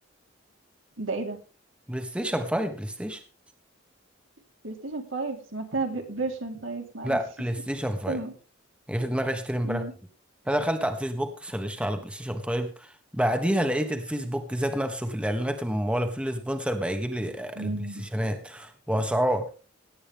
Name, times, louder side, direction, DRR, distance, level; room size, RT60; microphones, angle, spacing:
voice 1, 1.0-1.4 4.6-7.2 8.1-8.3 9.6-9.9 17.5-18.1, right 3 dB, 80° right, 2 dB, 3.4 m, -32 dB
voice 2, 1.9-3.2 7.0-8.2 8.9-9.8 10.5-19.5, equal, 5° right, 6 dB, 1.3 m, -28 dB
17.5 x 8.9 x 3.6 m, 0.35 s
head